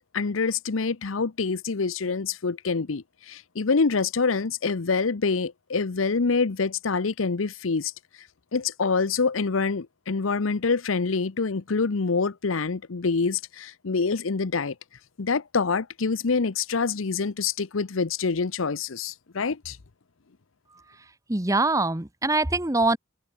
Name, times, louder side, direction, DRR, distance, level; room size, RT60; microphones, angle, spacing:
voice 1, 0.1-7.9 8.5-14.7 15.2-19.8, left 4 dB, 90° left, 0.8 m, -26 dB
voice 2, 21.3-23.0, right 2 dB, 15° right, 1.0 m, -23 dB
head